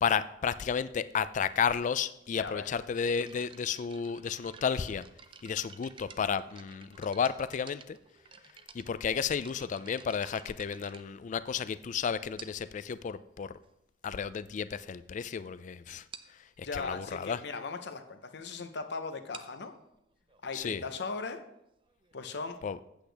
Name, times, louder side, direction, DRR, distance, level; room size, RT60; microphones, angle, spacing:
voice 1, 0.0-5.0 5.4-8.0 8.7-13.6 14.0-16.0 16.6-17.4 20.5-20.8 22.6-22.8, left 7 dB, 40° left, 15 dB, 0.3 m, -32 dB
voice 2, 2.3-2.7 16.6-19.7 20.4-21.4 22.1-22.6, left 4 dB, 65° left, 8 dB, 0.8 m, -38 dB
sound 1, 2.9-11.8 12.4-12.8 13.6-13.7 14.3-14.4 14.7-14.9 15.2-15.3 15.6-15.7 16.1-16.4 19.1-22.6, right 6 dB, 25° right, 0.4 m, -53 dB
8.3 x 7.9 x 3.4 m, 0.82 s
head